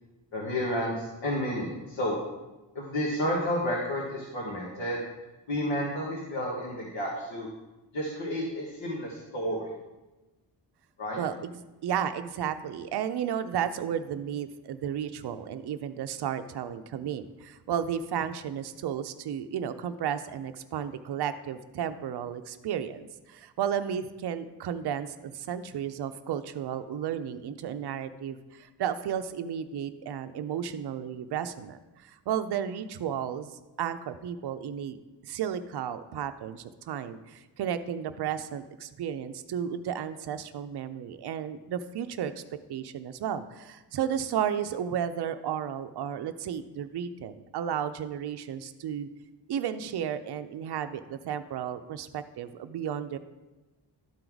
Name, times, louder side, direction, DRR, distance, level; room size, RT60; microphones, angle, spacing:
voice 1, 0.3-2.2 2.7-5.0 5.5-7.5 7.9-9.7 11.0-11.2, equal, 85° left, -4 dB, 1.5 m, -31 dB
voice 2, 11.2-33.5 33.8-35.0 35.3-42.4 42.7-49.1 49.5-53.2, right 9 dB, 65° right, 9 dB, 0.5 m, -33 dB
12.0 x 4.6 x 3.9 m, 1.1 s
wide cardioid pair, 170°, 44 cm